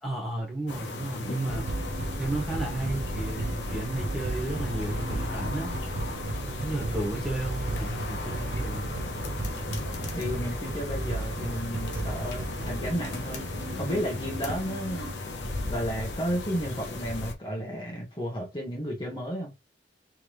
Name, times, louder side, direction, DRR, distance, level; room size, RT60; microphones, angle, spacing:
voice 1, 0.0-1.7 2.2-5.7 6.5-8.9, right 1 dB, ahead, 1.7 m, -33 dB
sound 1, 0.7-17.3, left 3 dB, 90° left, 0.9 m, -37 dB
sound 2, 1.5-15.1, right 2 dB, 85° right, 0.7 m, -34 dB
voice 2, 10.1-13.4 13.8-15.1 15.6-19.5, equal, 25° left, 1.3 m, -32 dB
3.6 x 3.2 x 3.1 m
head